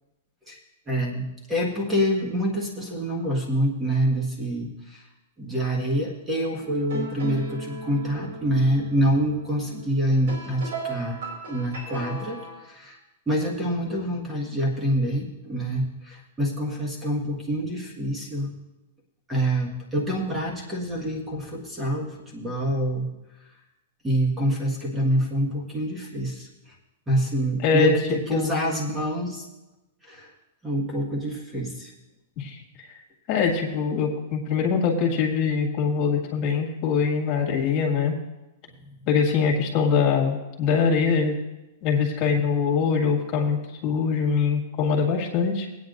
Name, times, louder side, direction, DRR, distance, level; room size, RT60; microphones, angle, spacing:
voice 1, 0.9-5.1 5.4-11.2 11.5-13.0 13.3-18.5 19.3-23.1 24.0-26.7 27.1-29.4 30.0-30.3 30.6-31.9, equal, 10° right, -1 dB, 1.6 m, -26 dB
sound 1, 6.6-12.6, right 2 dB, 70° right, 3.1 m, -37 dB
voice 2, 32.4-33.0 33.3-38.2 39.1-41.3 41.8-45.7, left 6 dB, 35° left, 0 dB, 1.9 m, -23 dB
18.5 x 9.3 x 2.6 m, 0.99 s
hypercardioid pair, 155°, 0 cm